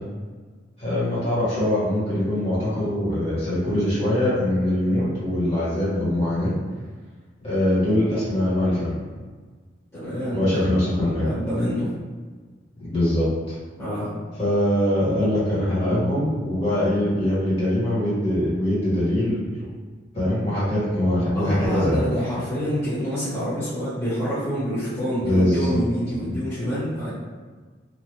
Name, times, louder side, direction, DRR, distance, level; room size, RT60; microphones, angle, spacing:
voice 1, 0.8-6.5 7.4-8.9 10.3-11.3 12.9-13.5 14.4-19.6 20.1-22.1 25.2-25.8 26.2-26.4, left 1 dB, 30° left, -11 dB, 1.5 m, -22 dB
voice 2, 9.9-10.5 10.8-11.9 13.8-14.1 21.3-27.1, equal, 15° left, -14 dB, 1.2 m, -27 dB
2.9 x 2.5 x 3.2 m, 1.4 s
head